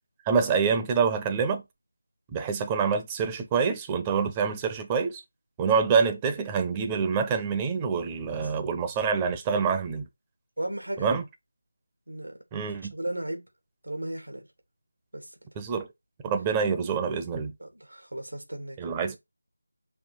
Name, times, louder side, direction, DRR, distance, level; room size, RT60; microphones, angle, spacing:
voice 1, 0.3-1.6 2.3-5.2 5.6-10.1 11.0-11.2 12.5-12.9 15.6-15.9 16.2-17.5 18.8-19.2, right 6 dB, 10° right, 0.7 m, -26 dB
voice 2, 10.6-11.1 12.1-12.4 12.9-13.4 13.8-14.4 15.1-15.3 17.6-18.8, right 1 dB, 90° right, 2.9 m, -35 dB
5.7 x 4.3 x 4.3 m
figure-of-eight pair, 170°, 0 cm